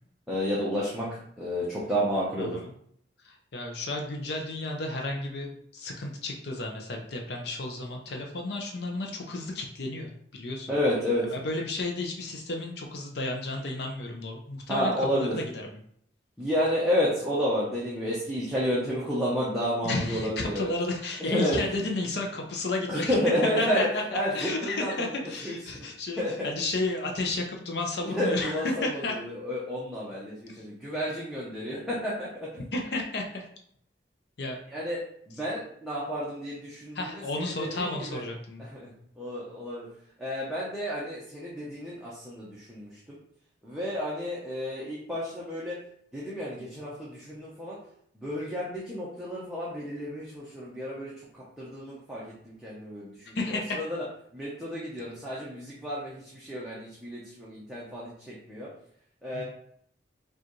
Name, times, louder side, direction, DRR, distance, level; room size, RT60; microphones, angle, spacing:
voice 1, 0.3-1.1 1.4-2.6 10.7-11.2 14.7-15.3 16.4-20.7 21.2-21.9 22.9-23.9 24.1-25.1 25.4-25.8 26.2-26.5 28.0-32.6 34.7-35.0 35.3-38.2 38.6-38.9 39.2-39.9 40.2-43.2 43.6-45.7 46.1-47.8 48.2-51.1 51.6-54.0 54.3-58.7 59.2-59.4, equal, 5° right, -8 dB, 0.8 m, -31 dB
voice 2, 2.4-2.7 3.2-10.7 11.3-15.6 19.8-23.2 23.6-29.2 30.6-30.7 32.7-33.4 34.4-34.6 36.9-38.6 53.3-53.8 59.3-59.4, left 2 dB, 65° left, 1 dB, 0.6 m, -32 dB
4.8 x 2.4 x 3.1 m, 0.67 s
head